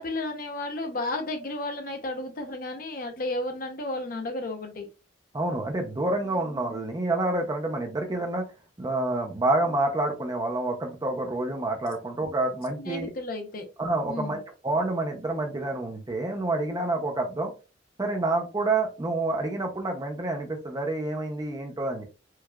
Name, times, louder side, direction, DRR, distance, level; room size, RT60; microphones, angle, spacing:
voice 1, 0.0-4.9 6.2-6.4 12.7-13.7 14.1-14.4, left 2 dB, 45° left, 5 dB, 0.7 m, -33 dB
voice 2, 5.3-8.4 8.8-13.1 13.8-17.5 18.0-22.0, right 2 dB, 20° right, 3 dB, 0.5 m, -28 dB
4.6 x 2.3 x 2.2 m, 0.32 s
head